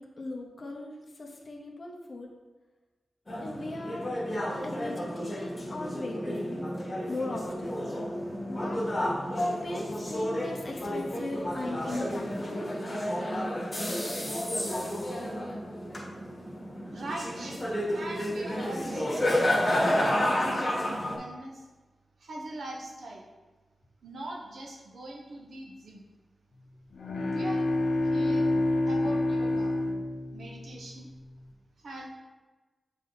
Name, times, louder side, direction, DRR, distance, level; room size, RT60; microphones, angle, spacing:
voice 1, 0.0-2.3 3.4-4.2 4.6-6.6 7.1-7.8 8.5-8.8 9.4-12.7, left 2 dB, 40° left, -1 dB, 0.9 m, -38 dB
sound 1, 3.3-21.2, left 1 dB, 20° left, 1.9 m, -31 dB
voice 2, 16.9-17.6 17.9-21.7 22.2-23.3 24.0-26.0 27.3-27.6 28.0-28.5 28.9-29.7 30.3-31.1 31.8-32.1, right 1 dB, 70° right, 1 dB, 1.1 m, -41 dB
sound 2, 26.9-31.0, left 2 dB, 75° left, 0.8 m, -28 dB
7.6 x 4.0 x 4.1 m, 1.2 s
wide cardioid pair, 125°, 0 cm